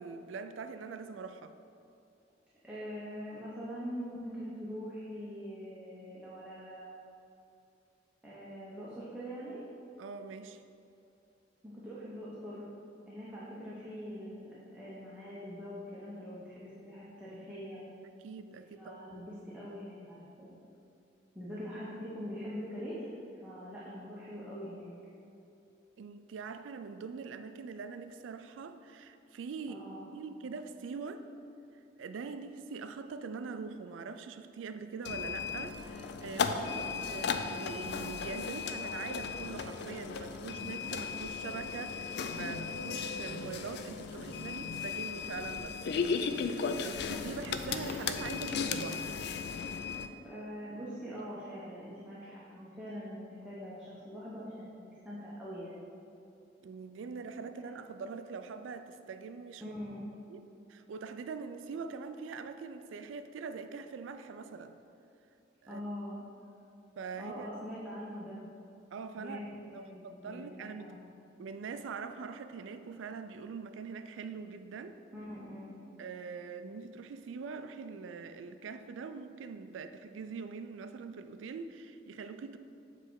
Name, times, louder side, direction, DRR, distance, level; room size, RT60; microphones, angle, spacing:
voice 1, 0.0-1.5 10.0-10.6 18.2-19.0 26.0-29.8 30.1-31.3 32.0-45.8 46.5-49.2 56.6-59.7 60.3-60.4 60.7-64.8 65.6-65.8 67.0-67.5 68.9-69.4 69.7-71.0 71.4-75.0 76.0-82.6, right 5 dB, 90° right, 9 dB, 0.3 m, -43 dB
voice 2, 2.6-7.0 8.2-9.6 11.6-12.6 13.1-17.8 18.8-20.5 21.3-23.1 23.4-24.9 29.7-30.1 32.0-32.1 36.3-36.9 50.2-55.9 57.2-57.7 59.6-60.1 65.7-66.2 67.2-68.4 69.2-71.1 75.1-75.9, equal, 5° right, -9 dB, 0.9 m, -43 dB
sound 1, 35.0-50.1, left 5 dB, 60° left, 0.3 m, -36 dB
7.5 x 3.3 x 4.7 m, 2.7 s
head